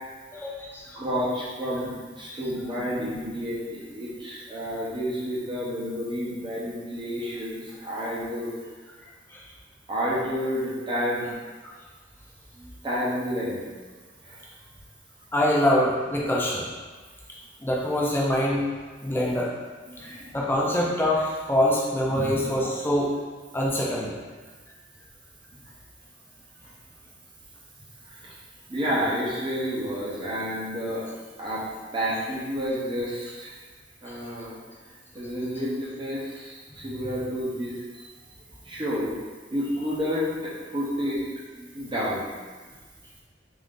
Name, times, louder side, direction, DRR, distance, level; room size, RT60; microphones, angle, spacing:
voice 1, 0.3-1.0 2.3-2.4 9.3-9.4 15.3-16.7 17.6-18.6 19.0-19.5 20.0-23.1 23.5-24.1 36.7-36.8, left 1 dB, 10° left, -4 dB, 0.5 m, -25 dB
voice 2, 0.9-8.5 9.9-11.3 12.5-13.6 14.2-14.4 19.9-20.3 22.1-22.4 25.5-25.6 28.1-28.4 28.7-31.1 31.4-31.6 31.9-33.5 34.0-34.6 35.1-38.1 38.6-39.2 39.5-41.2 41.6-42.2, equal, 25° right, -7 dB, 0.7 m, -30 dB
3.7 x 2.6 x 3.7 m, 1.4 s
head